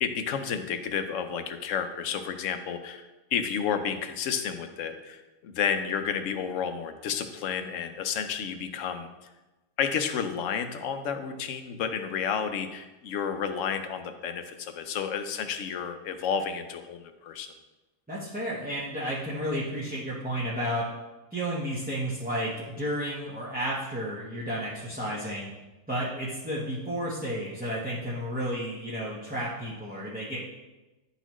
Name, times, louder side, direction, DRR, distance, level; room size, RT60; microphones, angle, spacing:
voice 1, 0.0-9.1 9.8-17.5, left 7 dB, 80° left, 8 dB, 1.0 m, -31 dB
voice 2, 18.1-20.9 21.3-25.5 25.9-30.4, equal, 10° right, -8 dB, 0.8 m, -32 dB
10.0 x 4.0 x 3.0 m, 1.1 s
omnidirectional pair, 1.3 m